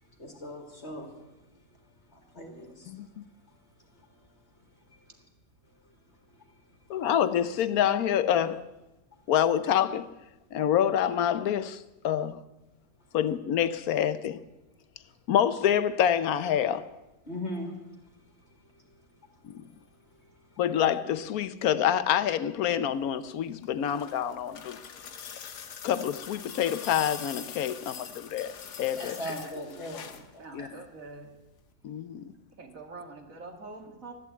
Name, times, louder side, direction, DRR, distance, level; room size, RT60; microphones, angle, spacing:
voice 1, 0.2-1.1 2.1-2.9 4.9-5.0 6.4-6.5 17.2-17.8 18.7-18.8 20.5-20.6 28.9-30.1 30.3-30.7, left 1 dB, 40° left, 2.5 m, -39 dB
voice 2, 2.9-3.2 6.9-8.7 9.3-10.1 10.5-12.4 13.1-14.4 15.3-16.9 19.4-19.7 20.6-24.8 25.8-28.5 28.8-29.2 30.5-30.7 31.8-32.3, left 10 dB, 70° left, 1.2 m, -27 dB
sound 1, 23.5-30.3 31.6-31.7, left 7 dB, 90° left, 1.7 m, -43 dB
voice 3, 30.1-31.3 32.6-34.1, right 3 dB, 55° right, 2.3 m, -45 dB
13.5 x 11.5 x 8.3 m
omnidirectional pair, 1.7 m